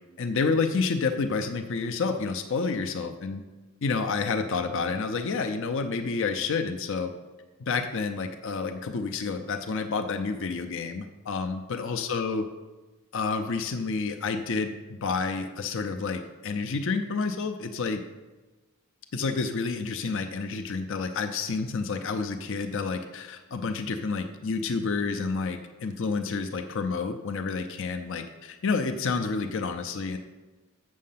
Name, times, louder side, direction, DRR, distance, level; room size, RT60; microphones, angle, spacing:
voice 1, 0.2-3.4 3.8-7.1 7.6-12.4 13.1-18.0 19.1-30.2, left 4 dB, 60° left, 5 dB, 0.5 m, -29 dB
7.5 x 6.3 x 5.7 m, 1.2 s
head